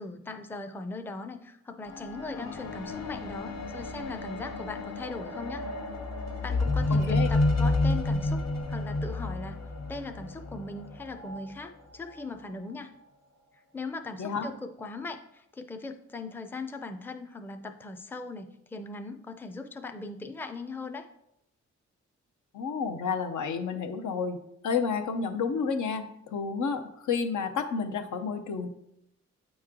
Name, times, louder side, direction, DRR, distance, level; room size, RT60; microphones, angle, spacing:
voice 1, 0.0-5.7 6.4-9.6 9.9-12.9 13.7-21.1, left 3 dB, 5° left, 7 dB, 0.5 m, -39 dB
sound 1, 1.9-11.4 12.2-12.3, left 2 dB, 60° left, 1.1 m, -30 dB
voice 2, 6.9-7.3 14.2-14.5 22.5-28.7, left 5 dB, 75° left, 6 dB, 0.7 m, -30 dB
8.5 x 3.1 x 3.7 m, 0.79 s
cardioid pair, 80°, 30 cm